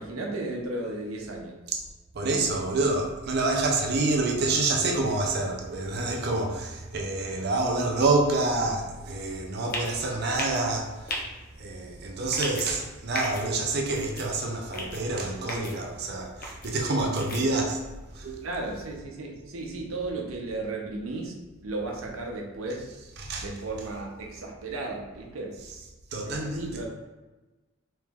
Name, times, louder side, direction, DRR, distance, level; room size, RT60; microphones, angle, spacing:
voice 1, 0.0-1.6 2.2-2.3 12.1-12.2 18.4-21.4 21.6-22.9 23.4-25.5 26.2-26.8, right 2 dB, 80° right, 0 dB, 0.7 m, -34 dB
voice 2, 2.1-11.2 11.6-17.8 18.1-18.5 23.2-23.5 26.1-26.8, right 2 dB, 50° right, 1 dB, 0.5 m, -27 dB
sound 1, 9.7-9.9 10.3-10.6 11.1-11.2 12.3-12.7 13.1-13.4 13.9-14.3 14.7-15.0 15.5-15.7 16.4-16.7 17.2-17.4, left 1 dB, 45° left, 0.7 m, -34 dB
3.2 x 2.9 x 3.5 m, 1.2 s
head